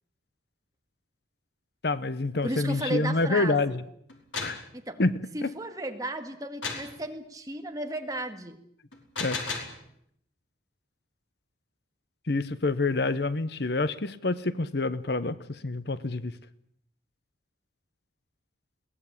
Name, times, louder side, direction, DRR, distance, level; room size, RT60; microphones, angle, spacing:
voice 1, 1.8-3.8 4.4-4.6 5.0-5.1 5.4-5.5 9.2-9.4 12.3-15.4 15.6-16.3, left 3 dB, 55° left, 15 dB, 0.9 m, -27 dB
voice 2, 2.4-3.8 4.7-5.0 5.3-8.6, right 1 dB, 20° right, 5 dB, 1.9 m, -34 dB
sound 1, 4.1-4.6 6.6-6.9 8.9-9.8, left 4 dB, 90° left, 5.0 m, -34 dB
22.0 x 18.0 x 8.8 m, 0.71 s
head